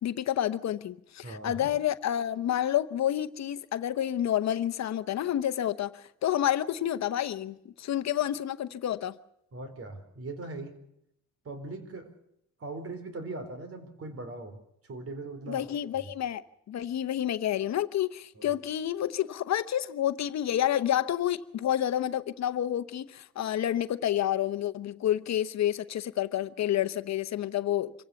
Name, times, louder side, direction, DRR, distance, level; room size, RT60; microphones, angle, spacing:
voice 1, 0.0-9.2 15.5-16.4 16.7-27.9, left 11 dB, 65° left, 0.9 m, -29 dB
voice 2, 1.2-1.7 9.5-10.8 11.4-12.1 12.6-14.6 14.9-15.7 18.4-18.5, right 2 dB, 50° right, 4.3 m, -40 dB
26.5 x 16.0 x 7.1 m
cardioid pair, 90°, 30 cm